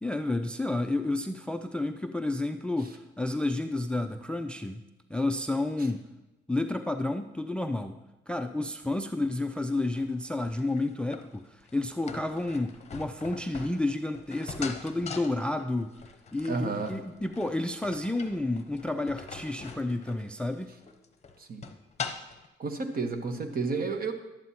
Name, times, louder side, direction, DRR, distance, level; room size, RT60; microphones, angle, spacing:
voice 1, 0.0-4.8 5.1-6.0 6.5-8.0 8.3-16.0 16.3-20.7, left 2 dB, 5° left, 9 dB, 0.4 m, -30 dB
sound 1, 9.6-22.5, left 5 dB, 35° left, 0.8 m, -43 dB
voice 2, 16.5-16.9 21.4-21.6 22.6-24.1, right 4 dB, 45° right, 6 dB, 1.1 m, -31 dB
11.5 x 9.1 x 2.8 m, 1.0 s
cardioid pair, 90°, 20 cm